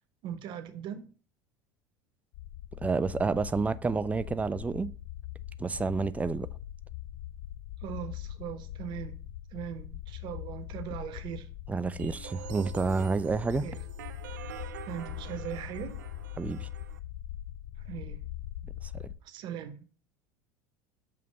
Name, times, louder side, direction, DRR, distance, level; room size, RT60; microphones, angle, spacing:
voice 1, 0.2-1.1 7.8-9.2 9.5-11.5 13.6-13.8 14.9-16.0 17.8-18.2 19.2-19.9, right 9 dB, 55° right, 0.9 m, -39 dB
sound 1, 2.3-19.1, left 13 dB, 65° left, 0.7 m, -41 dB
voice 2, 2.8-4.9 5.6-6.5 11.7-13.7 16.4-16.7 18.8-19.1, right 4 dB, 15° right, 0.4 m, -29 dB
sound 2, 12.0-17.0, right 12 dB, 80° right, 0.4 m, -46 dB
7.0 x 2.8 x 5.4 m
hypercardioid pair, 80°, 10 cm